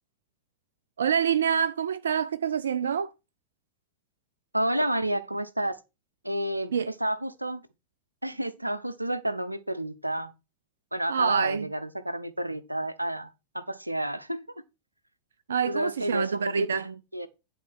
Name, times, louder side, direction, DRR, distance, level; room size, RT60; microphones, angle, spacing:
voice 1, 1.0-3.1 6.7-6.9 11.1-11.7 15.5-16.9, right 7 dB, 70° right, 0.4 m, -26 dB
voice 2, 4.5-5.8 6.2-6.7 7.0-7.6 8.2-10.3 10.9-14.4 15.7-17.3, right 1 dB, 85° right, 0.8 m, -30 dB
10.0 x 3.9 x 6.2 m
figure-of-eight pair, 90°, 0 cm